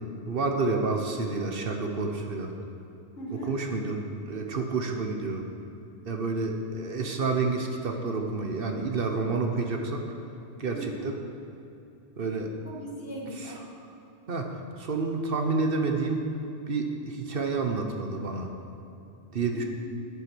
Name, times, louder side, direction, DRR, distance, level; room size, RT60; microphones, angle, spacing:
voice 1, 0.3-2.5 3.5-5.4 6.0-10.0 10.6-10.8 11.0-11.1 12.2-12.5 14.3-14.5 14.8-16.3 16.7-18.5 19.3-19.6, right 3 dB, 55° right, 3 dB, 1.1 m, -29 dB
voice 2, 3.2-3.6 10.7-11.1 12.6-13.6 19.5-19.6, right 1 dB, 60° left, -4 dB, 2.2 m, -38 dB
10.5 x 8.5 x 6.1 m, 2.8 s
omnidirectional pair, 1.1 m